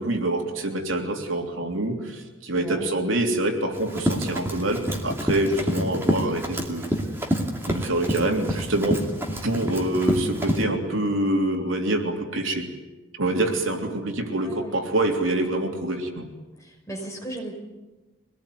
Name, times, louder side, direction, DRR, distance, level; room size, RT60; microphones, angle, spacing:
voice 1, 0.0-6.9 7.7-9.0 9.4-12.7 13.1-16.3, right 1 dB, 75° right, 2 dB, 3.3 m, -26 dB
voice 2, 2.5-2.9 14.4-14.8 16.9-17.5, right 1 dB, 15° left, -1 dB, 5.9 m, -35 dB
Run, 3.7-10.6, equal, 10° right, 2.6 m, -27 dB
24.0 x 19.0 x 9.5 m, 1.2 s
head